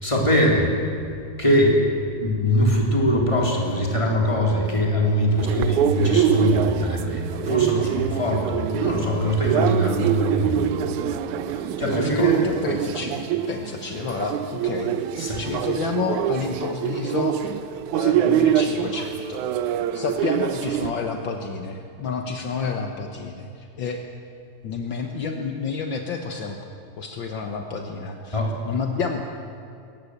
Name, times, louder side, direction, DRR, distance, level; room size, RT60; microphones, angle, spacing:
voice 1, 0.0-0.7 1.4-1.8 2.2-10.7 11.8-12.3 15.2-15.4 28.3-28.5, equal, 10° left, -2 dB, 3.4 m, -22 dB
sound 1, 5.4-20.9, right 9 dB, 75° right, 2.1 m, -24 dB
voice 2, 11.8-15.0 15.4-17.6 17.9-19.5 19.9-24.0 24.6-26.6 27.0-28.4 28.6-29.3, left 5 dB, 65° left, 4 dB, 1.2 m, -30 dB
22.0 x 18.5 x 8.1 m, 2.5 s
omnidirectional pair, 3.8 m